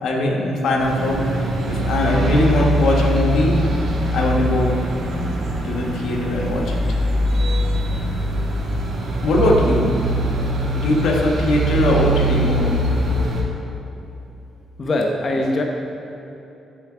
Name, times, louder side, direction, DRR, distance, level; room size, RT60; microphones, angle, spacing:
voice 1, 0.0-3.6 4.1-4.8 5.6-6.8 9.2-10.0 10.7-12.7, left 2 dB, 80° left, 0 dB, 1.1 m, -20 dB
sound 1, 0.8-13.4, right 1 dB, 75° right, 1.4 m, -22 dB
voice 2, 14.8-15.6, left 1 dB, 40° left, 1 dB, 0.8 m, -21 dB
10.0 x 4.6 x 4.9 m, 3.0 s
cardioid pair, 85°, 0 cm